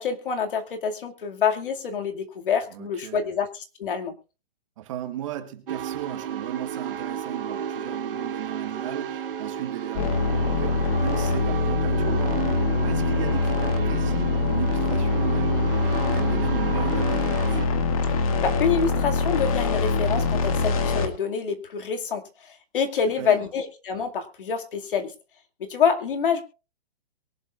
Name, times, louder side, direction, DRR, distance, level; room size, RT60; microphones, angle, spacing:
voice 1, 0.0-4.1 18.4-25.1 25.6-26.4, left 6 dB, 60° left, 2.3 m, -26 dB
voice 2, 2.7-3.4 4.8-15.6 16.1-17.6 23.2-23.5, right 12 dB, 30° right, 1.7 m, -36 dB
sound 1, 5.7-17.7, right 8 dB, 60° right, 1.5 m, -32 dB
sound 2, 10.0-21.1, left 3 dB, 35° left, 1.9 m, -24 dB
23.0 x 11.5 x 2.5 m
hypercardioid pair, 170°, 30 cm